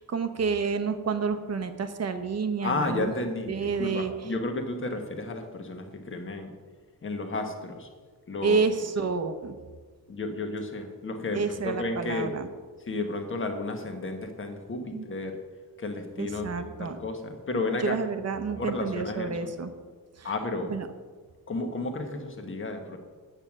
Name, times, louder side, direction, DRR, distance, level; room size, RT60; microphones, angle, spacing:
voice 1, 0.0-3.1 3.5-4.3 8.4-9.6 11.3-12.5 14.9-15.0 16.2-17.0 17.8-19.7 20.1-20.3 20.7-20.9, right 5 dB, 45° right, 8 dB, 0.9 m, -29 dB
voice 2, 2.6-6.5 7.0-7.9 8.3-8.7 10.1-11.4 11.8-12.3 12.9-15.3 15.8-17.9 18.6-19.5 20.2-20.7 21.5-23.0, left 2 dB, 35° left, 5 dB, 1.3 m, -32 dB
9.0 x 8.9 x 6.1 m, 1.5 s
wide cardioid pair, 170°, 36 cm